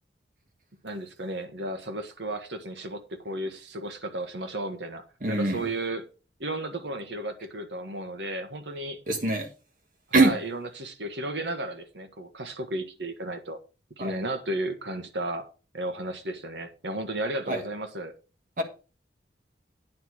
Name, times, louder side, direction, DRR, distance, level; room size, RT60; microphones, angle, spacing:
voice 1, 0.8-6.0 6.4-9.0 10.2-13.6 14.0-15.5 15.7-18.1, right 1 dB, 90° right, 1.6 m, -34 dB
voice 2, 5.2-5.6 9.1-9.5 10.1-10.4 14.0-14.2 17.5-17.6 18.6-18.7, right 2 dB, 50° right, 1.5 m, -23 dB
9.4 x 4.5 x 6.4 m
head